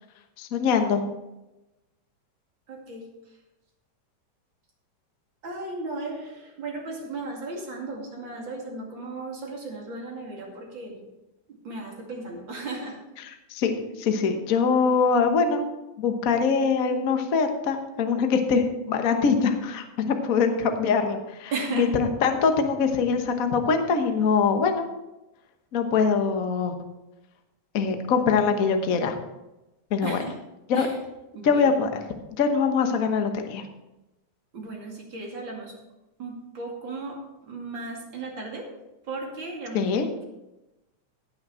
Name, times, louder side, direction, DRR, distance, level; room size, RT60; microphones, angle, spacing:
voice 1, 0.4-1.0 13.5-15.6 16.0-24.9 25.7-26.7 27.7-29.2 29.9-30.2 30.7-30.9 31.4-32.0 32.4-33.6 39.7-40.1, left 5 dB, 70° left, 6 dB, 0.8 m, -23 dB
voice 2, 2.7-3.0 5.4-11.0 11.5-13.0 21.5-21.9 30.0-30.4 30.7-31.0 31.3-31.8 34.5-35.7 36.2-38.7 39.0-40.2, right 3 dB, 40° right, -1 dB, 2.9 m, -35 dB
17.0 x 6.2 x 4.4 m, 0.98 s
omnidirectional pair, 3.3 m